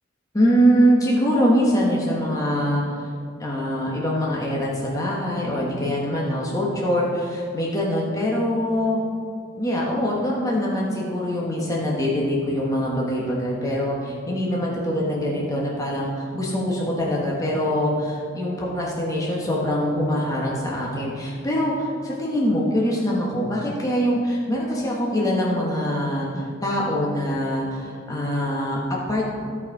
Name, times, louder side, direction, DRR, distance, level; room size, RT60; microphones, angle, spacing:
voice 1, 0.3-3.1 3.4-9.0 9.6-29.3, equal, 20° left, -4 dB, 1.3 m, -23 dB
14.0 x 4.8 x 4.8 m, 2.4 s
head